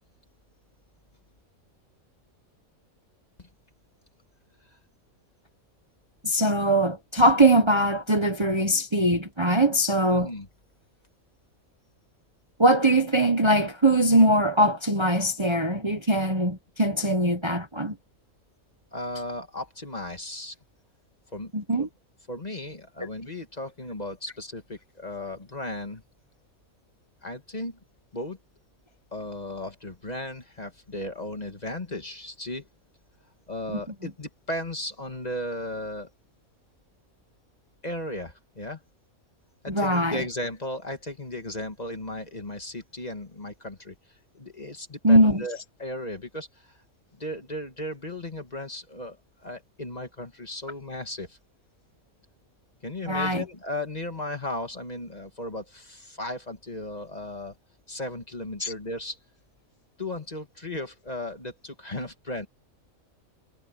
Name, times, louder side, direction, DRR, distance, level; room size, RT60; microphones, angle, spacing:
voice 1, 6.2-10.3 12.6-17.9 21.5-21.9 33.7-33.8 39.7-40.2 45.0-45.4 53.1-53.4 58.6-58.7, right 1 dB, 20° right, 1.3 m, -21 dB
voice 2, 10.0-10.5 18.9-20.6 21.3-21.5 21.8-21.9 22.3-26.0 27.2-27.8 28.1-28.4 29.1-32.7 33.5-36.1 37.8-38.8 39.8-44.0 44.3-46.7 47.1-49.2 49.4-51.4 52.8-57.6 57.9-59.2 60.0-62.5, left 1 dB, 30° left, 1.9 m, -35 dB
omnidirectional pair, 1.5 m